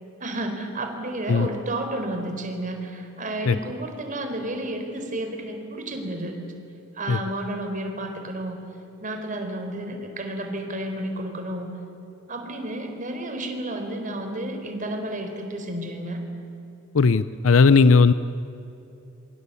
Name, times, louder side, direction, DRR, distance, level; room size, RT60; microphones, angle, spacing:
voice 1, 0.2-6.4 6.9-8.6 9.0-11.7 12.3-16.2, right 1 dB, 40° right, 4 dB, 4.1 m, -31 dB
voice 2, 16.9-18.1, left 4 dB, 85° left, 14 dB, 0.6 m, -16 dB
27.5 x 24.0 x 8.4 m, 2.9 s
head